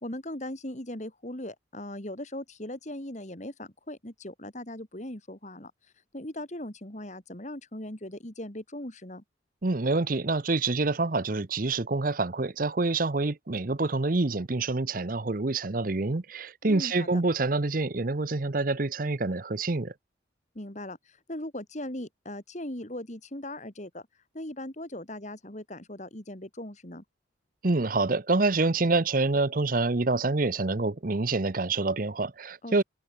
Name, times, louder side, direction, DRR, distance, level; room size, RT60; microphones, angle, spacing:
voice 1, 0.0-5.7 6.1-9.2 16.6-17.2 20.5-24.1 24.3-27.0 32.6-32.8, left 1 dB, 35° left, 2.6 m, -39 dB
voice 2, 9.6-19.9 27.6-32.8, right 3 dB, 45° right, 0.8 m, -27 dB
head